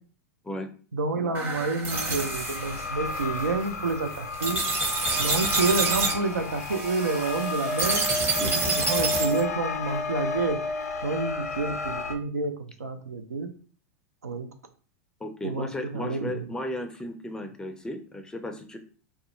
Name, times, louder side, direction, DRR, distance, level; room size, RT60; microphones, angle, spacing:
voice 1, 0.9-4.6 5.2-8.1 8.4-10.6 11.0-12.5 12.8-13.5 14.2-14.5 15.4-16.5, right 3 dB, 80° right, 6 dB, 0.4 m, -29 dB
sound 1, 1.3-9.4, right 3 dB, 25° right, 0.8 m, -29 dB
sound 2, 1.9-12.2, left 3 dB, 75° left, 0.4 m, -32 dB
voice 2, 15.2-18.8, left 1 dB, 10° left, 6 dB, 0.4 m, -35 dB
2.3 x 2.1 x 2.8 m, 0.41 s
figure-of-eight pair, 90°, 8 cm